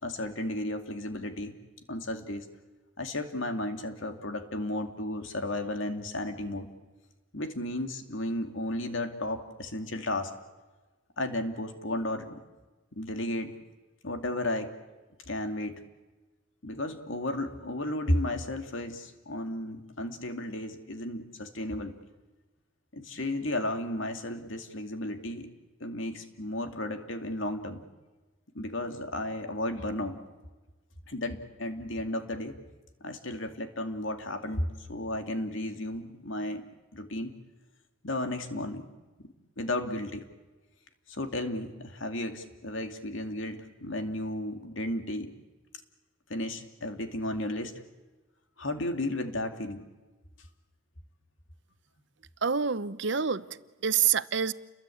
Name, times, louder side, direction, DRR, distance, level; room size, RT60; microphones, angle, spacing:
voice 1, 0.0-1.6 1.9-2.5 3.0-6.7 7.3-10.3 11.2-12.3 13.0-13.5 14.0-14.7 15.3-15.8 16.6-21.9 22.9-25.5 25.8-27.8 28.5-30.2 31.1-32.5 33.0-37.3 38.0-38.9 39.2-39.3 39.6-40.3 41.1-45.3 46.3-47.8 48.6-49.8, left 1 dB, 65° left, 6 dB, 2.5 m, -33 dB
voice 2, 52.4-54.5, right 7 dB, 55° right, 15 dB, 0.8 m, -27 dB
29.5 x 22.5 x 8.5 m, 1.2 s
head